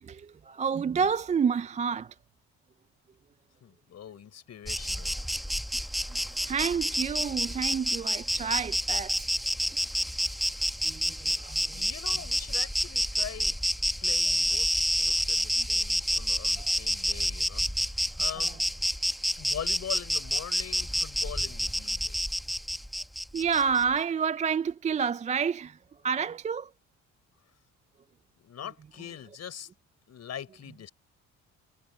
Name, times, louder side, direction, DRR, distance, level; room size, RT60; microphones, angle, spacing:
voice 1, 0.0-2.2 6.1-9.4 10.8-11.9 15.6-15.7 16.6-16.7 18.4-18.5 23.3-25.8 26.0-26.7, right 6 dB, 25° right, 0.3 m, -29 dB
voice 2, 3.6-5.1 11.7-13.6 14.0-17.7 18.2-18.6 19.4-22.2 28.4-29.7 30.1-30.9, left 9 dB, 60° left, 5.6 m, -42 dB
Insect, 4.7-23.8, equal, ahead, 1.0 m, -29 dB
cardioid pair, 90°, 30 cm